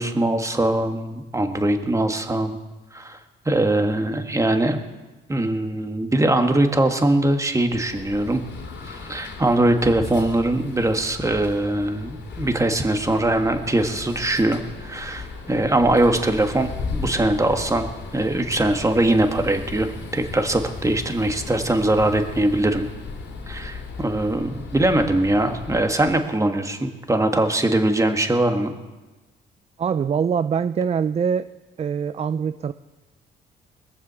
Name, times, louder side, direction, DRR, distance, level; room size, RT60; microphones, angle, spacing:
voice 1, 0.0-2.6 2.9-3.2 3.4-4.8 5.3-8.4 8.8-17.9 18.1-22.9 23.5-28.7, right 1 dB, 15° right, 5 dB, 1.6 m, -21 dB
sound 1, 7.7-26.1, left 4 dB, 65° left, 2.8 m, -36 dB
voice 2, 29.8-31.5 31.8-32.7, right 7 dB, 30° right, 13 dB, 0.4 m, -23 dB
21.5 x 7.3 x 6.9 m, 1.2 s
cardioid pair, 90°, 20 cm